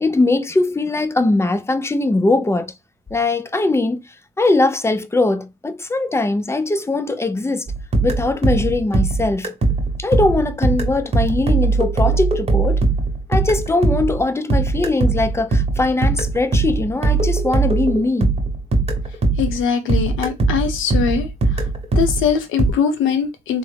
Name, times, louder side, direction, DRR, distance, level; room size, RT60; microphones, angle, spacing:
voice 1, 0.0-2.7 3.1-7.7 8.0-9.5 10.0-12.9 13.3-18.4, left 2 dB, 15° left, 0.4 m, -20 dB
sound 1, 7.7-19.6 19.9-22.7, right 3 dB, 30° right, 1.0 m, -20 dB
voice 2, 19.4-21.3 22.0-23.6, left 7 dB, 90° left, 0.7 m, -21 dB
3.5 x 2.0 x 3.3 m
cardioid pair, 90°, 20 cm